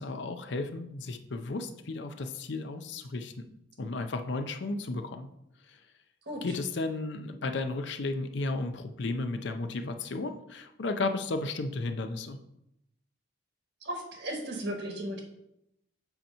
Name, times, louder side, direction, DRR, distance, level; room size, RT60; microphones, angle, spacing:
voice 1, 0.0-3.3 3.8-5.3 5.7-5.8 6.4-12.4, left 3 dB, 60° left, 7 dB, 0.6 m, -34 dB
voice 2, 6.3-6.6 13.8-15.2, right 1 dB, 60° right, 2 dB, 1.2 m, -36 dB
7.9 x 2.9 x 5.5 m, 0.83 s
head